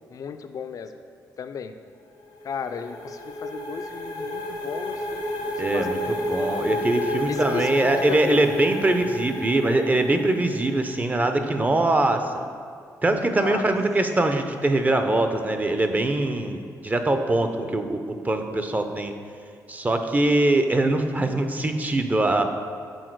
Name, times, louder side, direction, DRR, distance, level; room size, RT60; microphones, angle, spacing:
voice 1, 0.1-0.9 1.4-1.8 2.4-5.2 5.7-6.2 7.3-8.4 13.4-13.8, left 6 dB, 55° left, 9 dB, 0.4 m, -34 dB
sound 1, 2.1-10.8, left 1 dB, 85° left, 0.8 m, -31 dB
voice 2, 5.6-12.5 13.0-19.1 19.7-22.4, right 2 dB, 25° right, 7 dB, 0.5 m, -23 dB
6.3 x 4.3 x 4.6 m, 2.3 s
cardioid pair, 90°, 7 cm